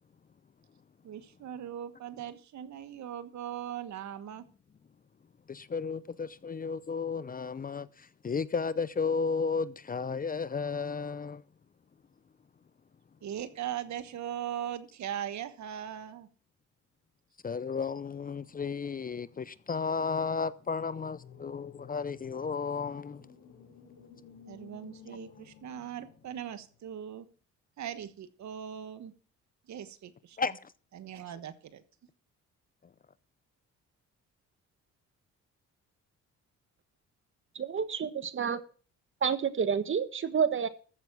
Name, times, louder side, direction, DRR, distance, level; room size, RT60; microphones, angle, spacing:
voice 1, 1.0-4.5 13.2-16.3 24.5-27.3 27.8-29.1 29.7-30.4 30.9-31.8, right 10 dB, 65° right, 1.3 m, -39 dB
voice 2, 5.5-11.4 17.4-23.2 30.4-30.7, left 5 dB, 30° left, 0.6 m, -33 dB
sound 1, 20.8-26.9, left 7 dB, 60° left, 4.4 m, -54 dB
voice 3, 37.5-38.6 39.2-40.7, right 7 dB, 40° right, 1.4 m, -29 dB
14.5 x 7.2 x 6.2 m
cardioid pair, 90°, 30 cm